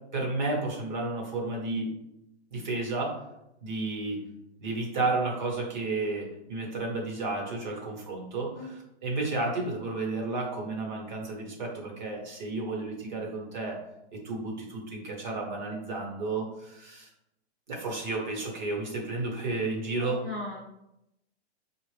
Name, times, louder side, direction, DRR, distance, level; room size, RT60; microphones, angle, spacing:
voice 1, 0.1-1.9 2.5-3.2 3.6-4.2 4.6-13.8 14.1-17.1 17.7-20.2, right 3 dB, 45° right, -1 dB, 1.2 m, -32 dB
voice 2, 20.0-20.6, left 2 dB, ahead, -17 dB, 0.5 m, -37 dB
5.4 x 2.4 x 3.2 m, 0.85 s
hypercardioid pair, 175°, 33 cm